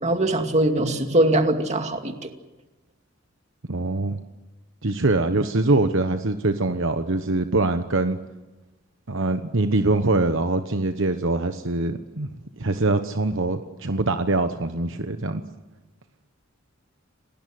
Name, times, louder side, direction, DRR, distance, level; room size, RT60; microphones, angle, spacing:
voice 1, 0.0-2.1, right 1 dB, 35° right, 5 dB, 2.4 m, -21 dB
voice 2, 3.7-4.2 4.8-8.2 9.1-12.3 12.6-15.4, right 2 dB, 60° right, 8 dB, 1.1 m, -23 dB
29.0 x 19.0 x 7.9 m, 1.1 s
head